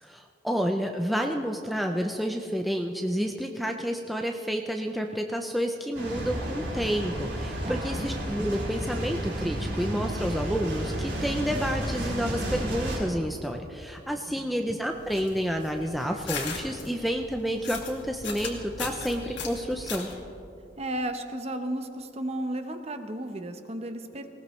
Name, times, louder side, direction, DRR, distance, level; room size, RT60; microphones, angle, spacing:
voice 1, 0.0-20.1, equal, ahead, 2 dB, 0.5 m, -30 dB
sound 1, 5.9-13.0, right 1 dB, 70° right, 4.4 m, -32 dB
voice 2, 7.6-8.1 14.3-14.6 20.8-24.3, right 1 dB, 35° right, 7 dB, 0.9 m, -34 dB
sound 2, 14.9-20.2, left 4 dB, 70° left, 2.1 m, -38 dB
19.5 x 18.5 x 3.2 m, 2.6 s
head